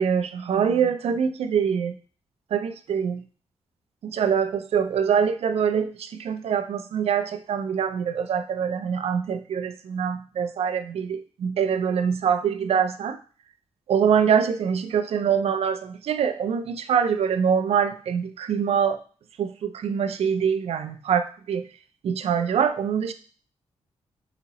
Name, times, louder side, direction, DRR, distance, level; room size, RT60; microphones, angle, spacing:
voice 1, 0.0-1.9 2.5-3.2 4.0-13.2 13.9-19.0 19.4-21.7 22.0-23.1, right 7 dB, 70° right, 10 dB, 0.4 m, -24 dB
4.9 x 2.8 x 2.9 m, 0.40 s
wide cardioid pair, 120°, 11 cm